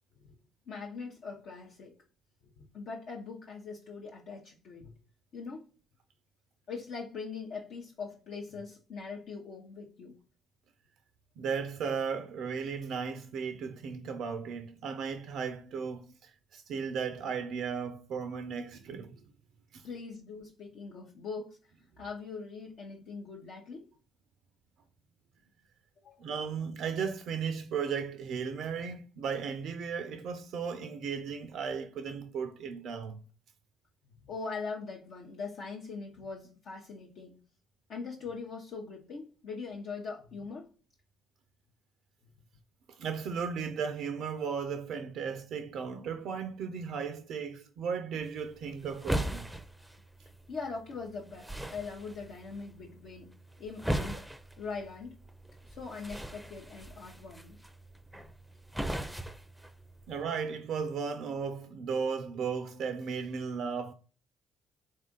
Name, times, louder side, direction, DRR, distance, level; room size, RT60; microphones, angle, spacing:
voice 1, 0.7-1.9 2.6-4.9 5.3-5.7 6.7-10.1 19.8-21.6 22.0-23.9 26.0-26.3 34.2-37.4 37.9-40.7 50.5-53.3 53.6-54.2 54.6-55.2 55.6-57.6 58.2-58.3, left 4 dB, 65° left, 0.7 m, -41 dB
voice 2, 11.4-19.2 19.7-19.9 26.2-33.2 42.9-49.5 60.1-63.9, right 6 dB, 65° right, 0.3 m, -35 dB
sound 1, 48.2-60.2, right 1 dB, 5° right, 0.5 m, -39 dB
3.6 x 2.4 x 3.7 m
hypercardioid pair, 50°, 0 cm